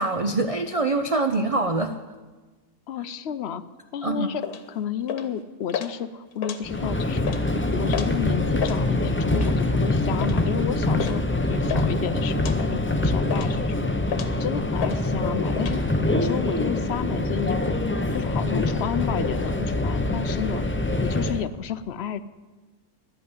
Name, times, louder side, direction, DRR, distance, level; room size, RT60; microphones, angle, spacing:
voice 1, 0.0-2.0 4.0-4.3, right 2 dB, 45° right, 6 dB, 0.4 m, -24 dB
voice 2, 2.9-3.6 3.9-4.4 4.7-7.3 7.5-13.9 14.4-15.8 16.1-17.8 18.1-20.6 21.0-22.2, left 9 dB, 60° left, 13 dB, 0.7 m, -31 dB
sound 1, 4.4-4.6 5.1-5.4 5.7-5.9 6.3-6.9 7.2-7.4 7.9-8.2 8.5-8.8 9.3-9.6 10.2-10.4 11.0-11.2 11.4-11.9 12.4-12.6 13.0-13.6 14.1-14.4 14.8-15.0 15.3-15.8, left 8 dB, 90° left, 1.5 m, -32 dB
Subway metro underground, 6.6-21.5, left 2 dB, 15° left, 0.4 m, -24 dB
11.5 x 8.5 x 9.6 m, 1.3 s
omnidirectional pair, 1.5 m